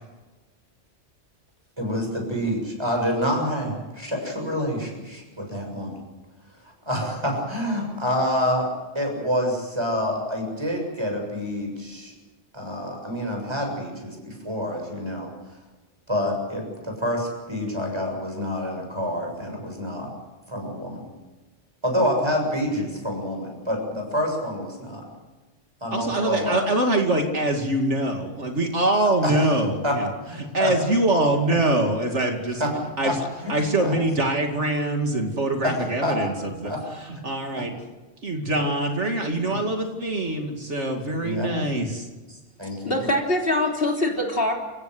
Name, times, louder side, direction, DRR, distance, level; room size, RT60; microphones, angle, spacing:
voice 1, 1.8-6.0 6.6-12.1 12.5-15.3 16.1-20.1 20.5-21.1 21.8-25.0 25.8-26.6 29.2-29.4 29.8-30.0 30.2-30.7 32.6-32.7 33.0-33.1 33.4-33.5 33.8-33.9 35.6-36.2 36.6-36.8 37.5-37.7 38.6-38.7 39.5-39.6 41.2-41.5 42.6-43.1, equal, 20° right, 2 dB, 7.2 m, -27 dB
voice 2, 25.9-30.1 30.5-32.6 33.0-33.2 33.5-36.3 36.6-36.7 37.1-37.8 38.2-41.9, right 1 dB, 65° right, 3 dB, 2.8 m, -24 dB
voice 3, 42.9-44.5, left 1 dB, 50° left, 1 dB, 3.7 m, -23 dB
28.5 x 16.5 x 8.0 m, 1.2 s
omnidirectional pair, 1.3 m